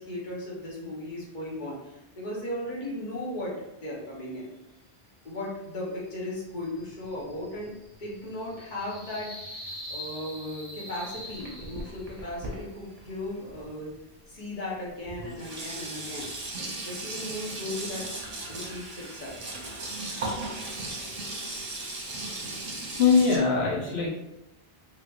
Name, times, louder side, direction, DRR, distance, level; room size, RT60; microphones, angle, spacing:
voice 1, 0.0-4.5 5.2-7.7 8.0-9.3 9.9-13.9 14.3-16.3 16.6-18.1 18.5-19.4, left 1 dB, 50° left, -5 dB, 1.2 m, -36 dB
sound 1, 6.3-12.3, equal, 30° left, 1.0 m, -44 dB
Sink (filling or washing), 10.8-14.0 14.7-14.8 15.1-23.4, right 2 dB, 40° right, 0.7 m, -37 dB
voice 2, 23.0-24.1, left 5 dB, 85° left, -4 dB, 1.0 m, -22 dB
3.2 x 3.2 x 2.5 m, 0.91 s
omnidirectional pair, 1.0 m